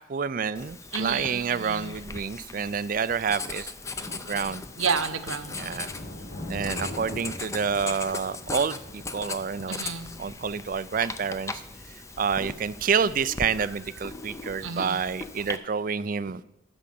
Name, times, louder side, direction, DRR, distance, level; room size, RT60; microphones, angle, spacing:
voice 1, 0.1-3.7 4.1-4.6 5.5-5.9 6.5-9.8 10.2-11.6 12.2-16.4, right 6 dB, 40° right, 17 dB, 0.4 m, -28 dB
Writing, 0.6-15.6, left 3 dB, 15° left, 0.5 m, -39 dB
voice 2, 0.9-2.0 4.8-5.6 9.7-10.1 13.6-13.7 14.6-15.0, right 6 dB, 75° right, 10 dB, 0.9 m, -30 dB
Thunder, 3.8-13.8, left 1 dB, 65° left, 4.4 m, -43 dB
12.0 x 6.3 x 7.6 m, 0.85 s
head